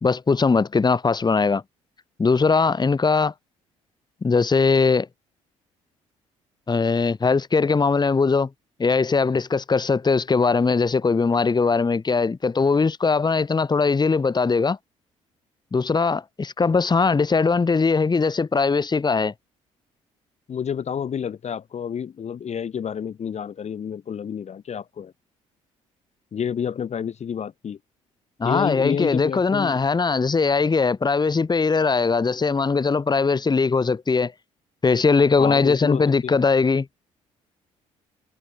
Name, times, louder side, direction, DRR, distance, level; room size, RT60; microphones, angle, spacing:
voice 1, 0.0-1.6 2.2-3.3 4.2-5.1 6.7-8.5 8.8-14.8 15.7-19.3 28.4-34.3 34.8-36.9, left 4 dB, 25° left, 1.8 m, -20 dB
voice 2, 20.5-25.1 26.3-27.8 28.4-29.8 35.4-36.4, left 8 dB, 45° left, 1.7 m, -29 dB
hypercardioid pair, 50°, 16 cm